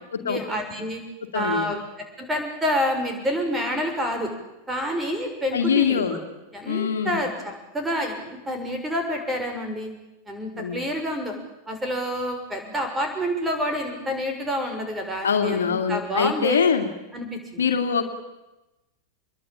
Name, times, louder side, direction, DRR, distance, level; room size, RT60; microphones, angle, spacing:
voice 1, 0.2-1.0 1.3-1.8 2.2-4.3 4.7-6.2 6.5-9.9 10.3-11.3 11.7-16.6 17.1-17.6, equal, 15° right, 5 dB, 6.8 m, -28 dB
voice 2, 1.3-1.7 5.5-6.2 6.7-7.2 10.5-10.8 15.2-16.9 17.6-18.0, left 6 dB, 70° left, 6 dB, 2.6 m, -23 dB
26.0 x 22.0 x 9.0 m, 1.0 s
figure-of-eight pair, 90°, 0 cm